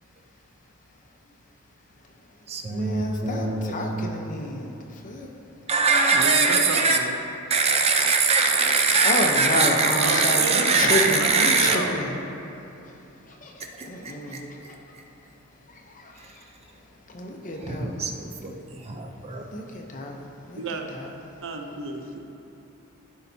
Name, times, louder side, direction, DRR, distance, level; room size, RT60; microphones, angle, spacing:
voice 1, 1.9-5.7 9.0-18.7 19.0-21.6, left 1 dB, 35° left, 2 dB, 0.7 m, -32 dB
voice 2, 2.5-4.1 5.7-7.0 7.5-11.8 13.8-13.9 14.3-14.4 17.7-19.4, right 4 dB, 30° right, 3 dB, 0.5 m, -22 dB
voice 3, 6.1-7.1 10.0-10.9 11.2-11.9 20.6-20.9 21.4-22.2, right 3 dB, 60° right, 3 dB, 0.7 m, -31 dB
14.0 x 5.6 x 2.7 m, 2.8 s
head